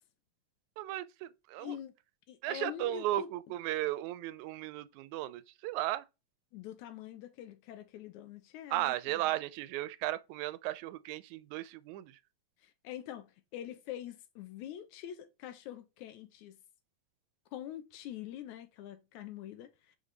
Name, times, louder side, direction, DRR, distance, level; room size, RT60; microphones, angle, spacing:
voice 1, 0.8-1.8 2.4-6.1 8.7-12.2, right 15 dB, 85° right, 1.9 m, -35 dB
voice 2, 1.6-1.9 2.3-3.3 6.5-8.9 12.6-16.6 17.5-20.0, left 11 dB, 85° left, 2.2 m, -45 dB
5.3 x 5.1 x 3.9 m
omnidirectional pair, 3.3 m